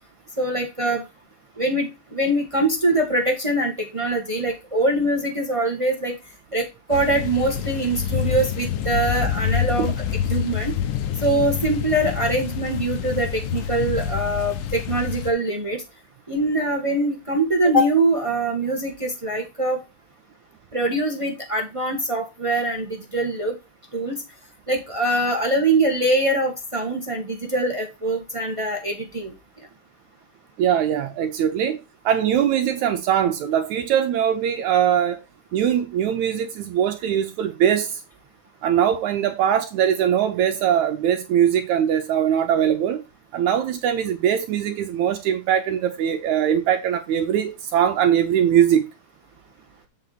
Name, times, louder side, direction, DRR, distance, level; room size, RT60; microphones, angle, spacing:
voice 1, 0.4-1.0 1.6-6.2 6.5-9.9 10.3-10.7 11.2-15.8 16.3-19.8 20.7-23.6 23.9-24.2 24.7-29.3, right 1 dB, 45° right, 0.4 m, -23 dB
sound 1, 6.9-15.3, left 8 dB, 80° left, 2.6 m, -27 dB
voice 2, 30.6-31.8 32.1-35.2 35.5-38.0 38.6-43.0 43.3-48.9, right 9 dB, 75° right, 2.0 m, -21 dB
8.1 x 4.9 x 4.1 m
omnidirectional pair, 3.7 m